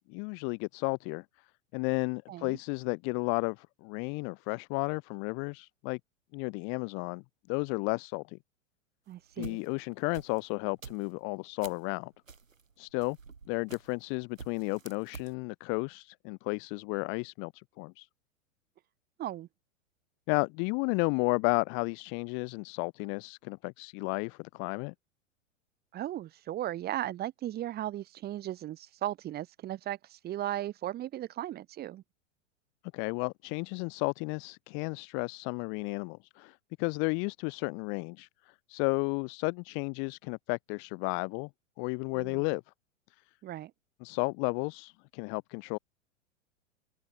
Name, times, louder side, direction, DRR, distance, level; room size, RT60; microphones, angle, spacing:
voice 1, 0.1-1.2 1.7-6.0 6.3-8.4 9.4-12.1 12.8-13.2 13.5-18.1 20.3-24.9 32.9-38.3 38.7-41.5 41.8-42.6 44.0-45.8, left 38 dB, 30° left, 0.7 m, -33 dB
voice 2, 2.3-2.6 9.1-9.6 19.2-19.5 25.9-32.0 42.1-42.5 43.4-43.7, right 13 dB, 25° right, 1.4 m, -36 dB
sound 1, 9.1-11.9 12.3-14.1 14.4-15.3, right 5 dB, 80° right, 3.1 m, -48 dB
open air
figure-of-eight pair, 100°, 39 cm